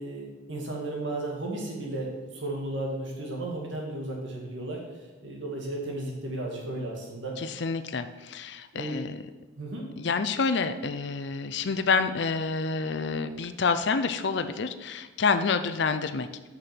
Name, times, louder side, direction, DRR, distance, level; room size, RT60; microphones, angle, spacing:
voice 1, 0.0-7.4 8.7-9.1 9.6-9.9, right 1 dB, 65° right, -1 dB, 1.9 m, -34 dB
voice 2, 7.4-9.2 10.0-16.5, left 4 dB, 60° left, 9 dB, 0.5 m, -28 dB
6.5 x 6.2 x 5.8 m, 1.2 s
head